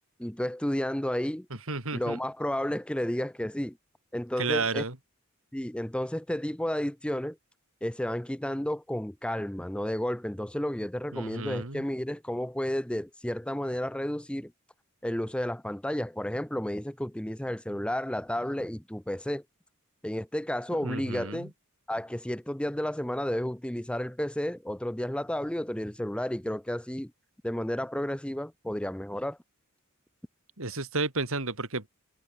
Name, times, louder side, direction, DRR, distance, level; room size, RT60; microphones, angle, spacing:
voice 1, 0.2-1.5 1.9-3.8 4.1-4.8 5.5-7.4 7.8-14.5 15.0-19.4 20.0-21.5 21.9-27.1 27.4-29.4, left 1 dB, 5° left, 0.7 m, -32 dB
voice 2, 1.7-2.2 4.4-5.0 11.1-11.8 20.8-21.5 30.6-31.9, right 3 dB, 65° right, 3.7 m, -32 dB
head